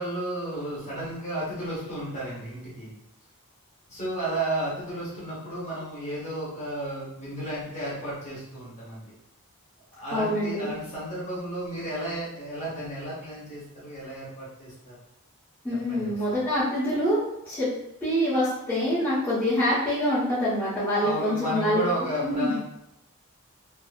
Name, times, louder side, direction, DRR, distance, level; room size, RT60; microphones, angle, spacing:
voice 1, 0.0-2.9 3.9-9.1 9.9-14.9 15.9-16.1 21.0-22.6, right 1 dB, 30° left, -8 dB, 1.1 m, -33 dB
voice 2, 10.1-10.7 15.6-17.7 18.0-21.8 22.2-22.6, equal, 10° left, -13 dB, 1.0 m, -25 dB
2.7 x 2.6 x 2.4 m, 0.80 s
head